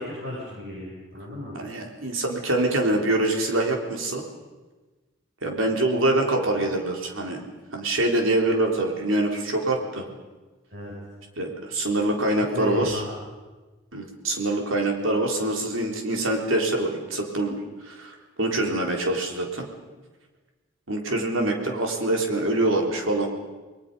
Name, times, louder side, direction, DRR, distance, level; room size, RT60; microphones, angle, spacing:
voice 1, 0.0-1.6 10.7-10.9 12.5-13.1, left 1 dB, 50° right, -4 dB, 7.1 m, -34 dB
voice 2, 1.6-4.2 5.4-7.4 7.7-10.1 11.4-13.0 13.9-17.6 17.8-19.7 20.9-23.3, right 2 dB, 80° right, 1 dB, 3.7 m, -25 dB
29.5 x 21.5 x 5.5 m, 1.2 s
head